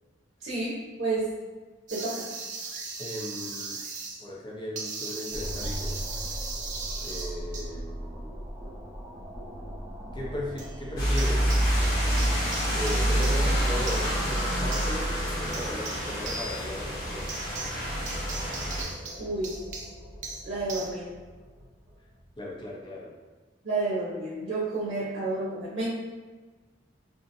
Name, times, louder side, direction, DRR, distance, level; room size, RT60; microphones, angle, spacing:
voice 1, 0.4-1.3 1.9-2.2 19.2-19.5 20.4-21.1 23.6-25.9, right 2 dB, 70° right, -7 dB, 0.7 m, -30 dB
sound 1, 1.9-4.2 4.8-7.7 10.6-10.8 11.2-11.9 12.2-20.9, right 4 dB, 40° right, 0.4 m, -39 dB
voice 2, 3.0-3.8 4.2-6.0 7.0-8.3 10.1-11.7 12.7-17.3 22.4-23.1, left 1 dB, 25° left, -4 dB, 0.6 m, -37 dB
sound 2, 5.3-22.6, equal, 15° right, 0.9 m, -40 dB
sound 3, 11.0-18.8, equal, 50° left, 1.0 m, -27 dB
2.8 x 2.5 x 2.5 m, 1.3 s
head